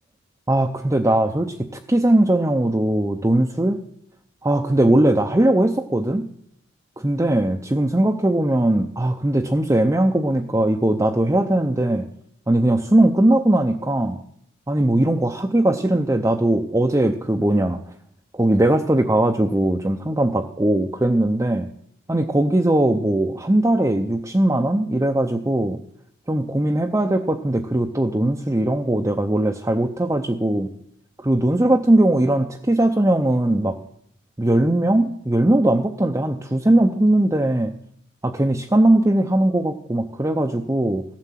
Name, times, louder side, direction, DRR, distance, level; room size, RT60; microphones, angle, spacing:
voice 1, 0.5-3.8 4.4-6.3 7.0-12.1 12.5-14.2 14.7-17.8 18.3-21.7 22.1-25.8 26.3-30.7 31.2-33.8 34.4-37.8 38.2-41.0, right 1 dB, 15° right, 3 dB, 0.6 m, -19 dB
15.5 x 11.5 x 7.4 m, 0.72 s
head